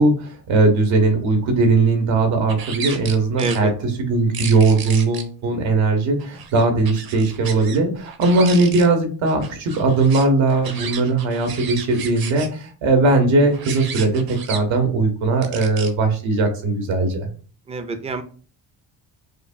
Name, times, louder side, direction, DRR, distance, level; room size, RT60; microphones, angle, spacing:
voice 1, 0.0-14.2 14.5-17.3, right 3 dB, 80° right, 4 dB, 1.2 m, -19 dB
sound 1, 2.5-3.6 4.3-5.2 6.2-7.8 8.0-8.9 9.2-12.5 13.5-14.6 15.4-15.9, right 7 dB, 50° right, 0.7 m, -33 dB
voice 2, 3.4-3.7 17.7-18.2, right 3 dB, 15° right, 9 dB, 0.4 m, -26 dB
5.0 x 2.2 x 2.6 m, 0.39 s
cardioid pair, 115°, 46 cm